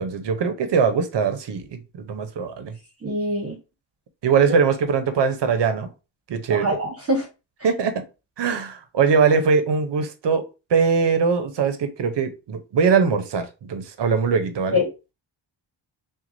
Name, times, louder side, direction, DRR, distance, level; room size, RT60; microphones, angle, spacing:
voice 1, 0.0-2.8 4.2-5.9 6.3-6.8 7.6-8.0 8.4-10.4 10.7-14.8, right 6 dB, 65° right, 0.8 m, -21 dB
voice 2, 3.0-3.6 6.5-7.3 14.7-14.8, left 1 dB, 30° right, 1.2 m, -23 dB
5.9 x 2.4 x 2.6 m
wide cardioid pair, 105°, 46 cm